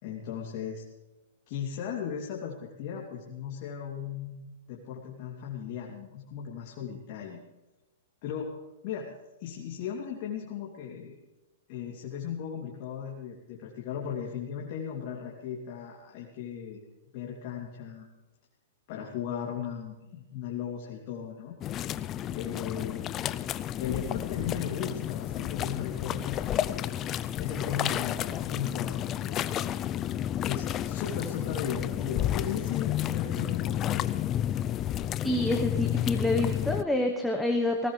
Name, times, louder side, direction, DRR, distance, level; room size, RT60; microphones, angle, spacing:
voice 1, 0.0-0.8 1.5-7.4 8.2-8.5 8.8-9.1 9.4-11.1 11.7-16.8 17.1-18.1 18.9-21.5 22.3-23.1 23.8-27.0 27.4-29.5 30.4-34.1, left 8 dB, 50° left, -2 dB, 2.8 m, -37 dB
sound 1, 21.6-36.8, left 11 dB, 25° left, 0.5 m, -31 dB
voice 2, 35.2-37.9, left 1 dB, ahead, 1 dB, 1.2 m, -27 dB
19.0 x 19.0 x 3.3 m, 1.1 s
hypercardioid pair, 140°, 0 cm